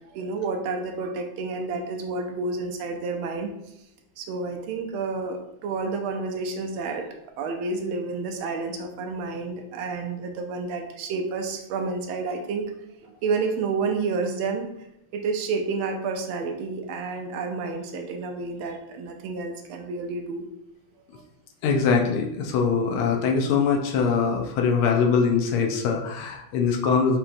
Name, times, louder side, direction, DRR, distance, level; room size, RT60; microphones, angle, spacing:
voice 1, 0.1-3.5 4.2-7.1 7.4-12.7 13.0-14.7 15.1-20.5 21.1-21.2, right 4 dB, 85° right, 4 dB, 1.5 m, -30 dB
voice 2, 21.6-27.2, left 5 dB, 90° left, 1 dB, 1.5 m, -22 dB
5.3 x 2.9 x 2.5 m, 0.83 s
omnidirectional pair, 2.3 m